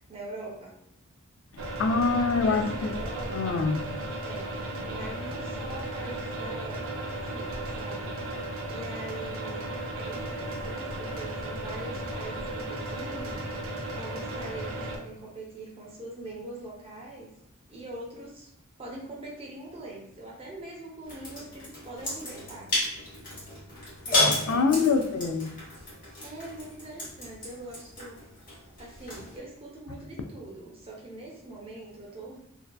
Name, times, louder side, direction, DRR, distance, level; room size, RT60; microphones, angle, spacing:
voice 1, 0.1-0.7 2.2-3.7 4.2-8.1 8.7-13.4 13.9-17.3 17.7-18.5 18.8-22.7 24.0-24.6 26.2-28.2 28.8-32.4, right 2 dB, 30° right, -3 dB, 0.6 m, -43 dB
voice 2, 1.5-2.9 3.3-3.9 24.5-25.5, left 4 dB, 70° left, 6 dB, 0.3 m, -25 dB
sound 1, 1.6-15.0, right 1 dB, 70° right, 0.5 m, -35 dB
sound 2, 21.0-29.4, left 2 dB, 40° left, 1.2 m, -32 dB
2.6 x 2.2 x 2.2 m, 0.75 s
head